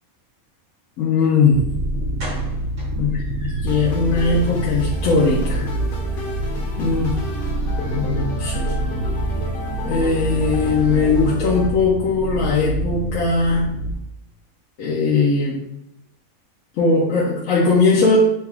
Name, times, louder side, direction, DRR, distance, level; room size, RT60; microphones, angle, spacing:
voice 1, 1.0-1.6 3.0-5.7 6.8-7.2 7.9-8.7 9.8-13.7 14.8-15.6 16.7-18.2, left 4 dB, 70° left, -5 dB, 1.0 m, -19 dB
sound 1, 1.5-1.6 2.2-3.9 4.3-4.4 4.8-4.9 5.2-5.3, right 1 dB, 60° right, 1.6 m, -39 dB
sound 2, 1.5-13.9, right 1 dB, 80° right, 1.0 m, -26 dB
sound 3, 3.7-11.7, left 1 dB, 45° left, 0.9 m, -33 dB
5.8 x 2.4 x 3.3 m, 0.87 s
omnidirectional pair, 1.5 m